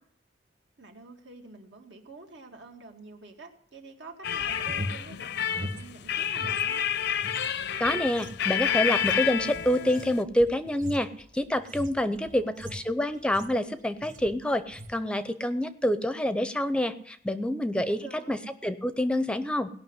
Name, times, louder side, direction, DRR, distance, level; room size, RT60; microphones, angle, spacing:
voice 1, 0.8-6.8 12.2-12.9 17.9-18.4, right 3 dB, 80° right, 3 dB, 2.0 m, -48 dB
sound 1, 4.2-10.2, left 9 dB, 65° left, 0.6 m, -29 dB
sound 2, 4.4-6.7 7.0-13.7 14.0-14.4 14.7-15.0, equal, 50° right, 1.8 m, -41 dB
voice 2, 7.8-11.1 11.3-18.0 18.3-18.4 18.6-19.7, left 1 dB, 5° left, 12 dB, 0.6 m, -27 dB
17.5 x 5.8 x 9.7 m, 0.64 s
head